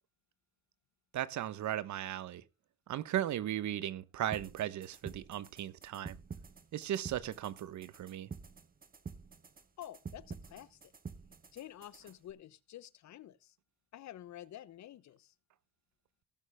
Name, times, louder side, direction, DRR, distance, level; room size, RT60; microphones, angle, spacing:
voice 1, 1.1-2.4 2.9-6.2 6.7-8.3, right 12 dB, 70° right, 1.0 m, -37 dB
sound 1, 4.3-12.3, right 5 dB, 30° right, 1.4 m, -49 dB
voice 2, 9.8-10.9 11.5-13.6 13.9-15.3, left 12 dB, 65° left, 1.0 m, -50 dB
17.5 x 6.7 x 3.5 m
cardioid pair, 90°, 30 cm